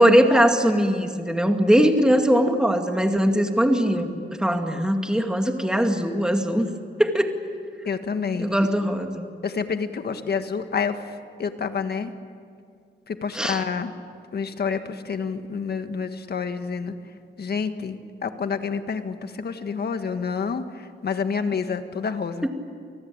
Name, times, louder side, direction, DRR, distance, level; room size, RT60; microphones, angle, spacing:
voice 1, 0.0-4.1 4.4-6.7 7.0-7.3 8.4-9.3 13.3-13.6, equal, 5° right, 5 dB, 2.2 m, -20 dB
voice 2, 7.8-8.7 9.4-12.1 13.1-13.9 14.3-16.9 17.4-22.5, left 5 dB, 60° left, 8 dB, 1.7 m, -28 dB
28.5 x 19.5 x 8.8 m, 2.3 s
wide cardioid pair, 105°, 19 cm